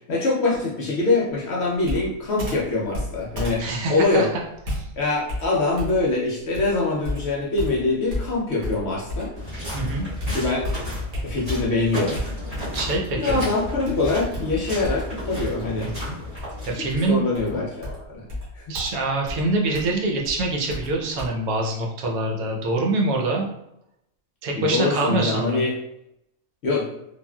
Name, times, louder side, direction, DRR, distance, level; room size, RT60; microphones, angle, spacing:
voice 1, 0.1-4.3 5.0-9.3 10.3-10.7 11.2-12.2 13.2-15.9 16.7-16.8 17.1-18.2 18.5-18.6 24.5-25.8 26.6-26.9, left 3 dB, 60° left, -3 dB, 0.7 m, -24 dB
Computer keyboard, 1.8-9.4 9.8-11.7 12.1-12.9 13.3-21.3, left 1 dB, 60° right, 1.3 m, -33 dB
voice 2, 3.6-4.3 4.7-4.9 9.7-10.1 12.7-13.4 15.8-16.1 16.7-17.2 18.7-23.5 24.4-25.6, right 2 dB, 80° right, 0 dB, 1.1 m, -25 dB
sound 1, 9.3-17.0, left 1 dB, 25° right, 1.5 m, -33 dB
3.3 x 2.4 x 2.2 m, 0.81 s
omnidirectional pair, 1.5 m